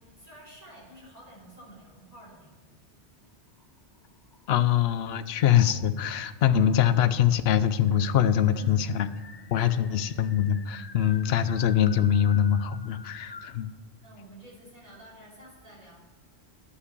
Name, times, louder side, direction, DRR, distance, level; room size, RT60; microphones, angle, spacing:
voice 1, 0.0-2.6 8.5-8.9 9.5-9.8 11.0-11.2 11.5-11.8 14.0-16.0, right 1 dB, 35° right, -5 dB, 3.1 m, -50 dB
sound 1, 3.5-5.0 5.5-6.1 7.1-7.2 7.5-7.6 7.9-13.6, left 4 dB, 40° left, 0.3 m, -49 dB
voice 2, 4.5-9.1 9.5-13.7, left 9 dB, 70° left, 13 dB, 0.8 m, -23 dB
9.8 x 5.6 x 6.7 m, 1.3 s
omnidirectional pair, 1.2 m